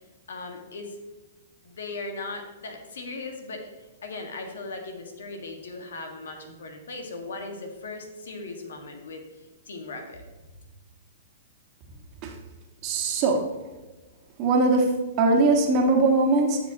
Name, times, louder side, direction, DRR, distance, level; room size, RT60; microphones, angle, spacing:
voice 1, 0.3-1.0 1.6-3.6 4.0-9.2 9.6-10.2, left 3 dB, 80° left, 4 dB, 1.7 m, -38 dB
voice 2, 12.8-13.4 14.4-14.9 15.2-16.6, right 3 dB, 40° right, 1 dB, 1.7 m, -21 dB
12.5 x 6.1 x 2.9 m, 1.2 s
hypercardioid pair, 125°, 0 cm